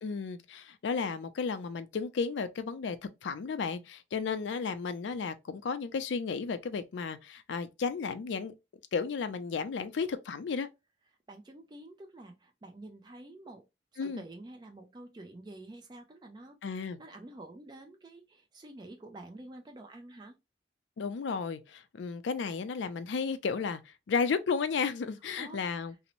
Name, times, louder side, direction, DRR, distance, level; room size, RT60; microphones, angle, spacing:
voice 1, 0.0-3.0 3.2-8.5 8.9-10.7 14.0-14.2 16.6-17.0 21.0-25.9, left 5 dB, 75° left, 0.4 m, -33 dB
voice 2, 11.3-13.7 13.9-20.4 25.4-25.6, right 2 dB, 25° right, 0.3 m, -49 dB
2.6 x 2.0 x 2.9 m
head